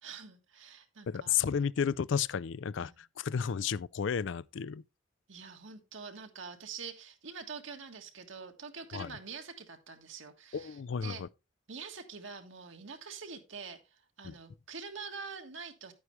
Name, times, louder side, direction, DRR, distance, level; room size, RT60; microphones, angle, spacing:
voice 1, 0.0-1.4 2.8-2.9 5.3-11.2 11.7-15.9, right 5 dB, 70° right, 1.5 m, -45 dB
voice 2, 1.1-4.8 8.9-9.1 10.5-11.3 14.2-14.3, left 7 dB, 65° left, 0.4 m, -32 dB
9.9 x 9.2 x 3.2 m
head